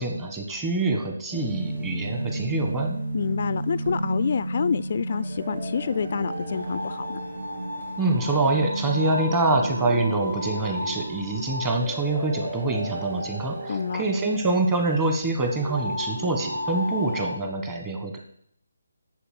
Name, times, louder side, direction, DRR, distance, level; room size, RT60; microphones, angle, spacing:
voice 1, 0.0-3.0 8.0-18.2, right 2 dB, 15° right, 3 dB, 1.4 m, -25 dB
sound 1, 1.3-17.3, right 1 dB, 70° right, 3.4 m, -33 dB
voice 2, 3.1-7.2 13.7-14.0, left 6 dB, 45° left, 16 dB, 0.3 m, -27 dB
Musical instrument, 3.9-11.8 12.0-12.2, equal, 45° right, 1.2 m, -36 dB
8.1 x 7.0 x 7.7 m, 0.68 s
hypercardioid pair, 165°, 0 cm